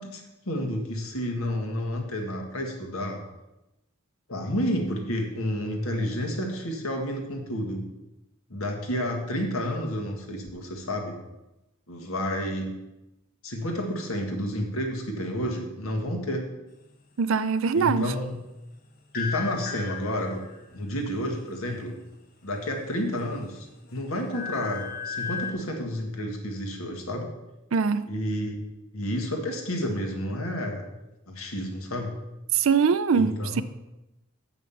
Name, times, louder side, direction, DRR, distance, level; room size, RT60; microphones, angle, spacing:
voice 1, 0.0-3.2 4.3-7.8 8.5-11.2 11.9-12.7 13.4-16.5 17.7-18.4 19.1-20.4 20.7-21.9 22.4-23.6 23.9-27.3 28.0-28.6 28.9-30.9 31.3-32.1 33.1-33.6, equal, 75° left, 1.7 m, -30 dB
voice 2, 17.2-18.1 27.7-28.1 32.5-33.6, right 5 dB, 65° right, 0.4 m, -23 dB
sound 1, 19.1-20.7 22.6-23.3 23.7-25.5, left 6 dB, 40° left, 1.0 m, -36 dB
7.4 x 5.8 x 7.0 m
head